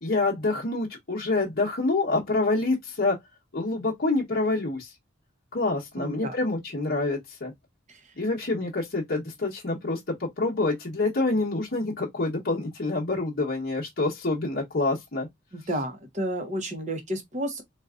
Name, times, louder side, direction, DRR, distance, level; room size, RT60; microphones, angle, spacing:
voice 1, 0.0-3.2 3.5-4.9 5.5-7.5 8.2-15.3, left 2 dB, 50° left, 0.9 m, -27 dB
voice 2, 6.0-6.3 15.5-17.6, right 1 dB, 35° right, 0.9 m, -31 dB
3.9 x 2.4 x 2.4 m
head